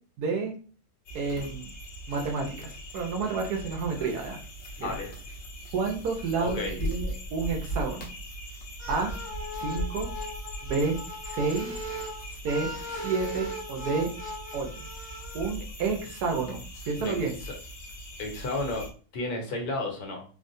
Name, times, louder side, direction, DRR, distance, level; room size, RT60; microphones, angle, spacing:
voice 1, 0.2-0.6 1.1-1.7 2.1-4.4 4.8-5.0 5.7-8.1 8.9-9.1 9.5-10.1 10.7-11.0 11.2-11.8 12.4-14.1 14.5-14.7 15.3-17.3, right 4 dB, 75° right, 2 dB, 1.3 m, -30 dB
sound 1, 1.1-18.9, equal, 55° left, 0.9 m, -39 dB
voice 2, 4.8-5.1 6.4-6.8 17.0-17.2 18.2-18.9 19.1-20.2, left 2 dB, 70° left, 1 dB, 1.3 m, -32 dB
sound 2, 8.8-15.5, equal, 10° left, 0.8 m, -38 dB
3.8 x 2.1 x 2.6 m, 0.40 s
omnidirectional pair, 1.7 m